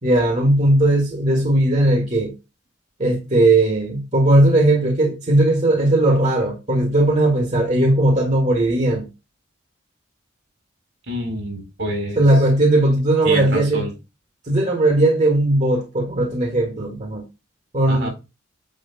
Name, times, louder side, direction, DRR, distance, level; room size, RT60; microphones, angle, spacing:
voice 1, 0.0-2.3 3.0-9.1 12.2-13.8 14.4-17.2 17.7-18.1, right 1 dB, 40° right, 1.6 m, -17 dB
voice 2, 11.1-12.2 13.2-13.9 17.9-18.1, right 1 dB, 75° right, 4.4 m, -27 dB
9.1 x 3.2 x 5.7 m
head